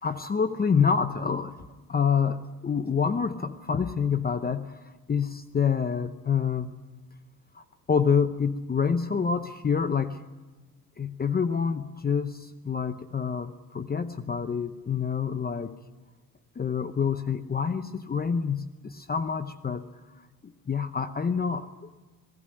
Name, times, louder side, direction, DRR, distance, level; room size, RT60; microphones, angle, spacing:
voice 1, 0.0-6.7 7.5-10.2 11.0-15.8 16.6-19.9 20.7-21.9, left 6 dB, 25° left, 10 dB, 0.8 m, -27 dB
20.0 x 17.0 x 9.9 m, 1.3 s
cardioid pair, 110°, 34 cm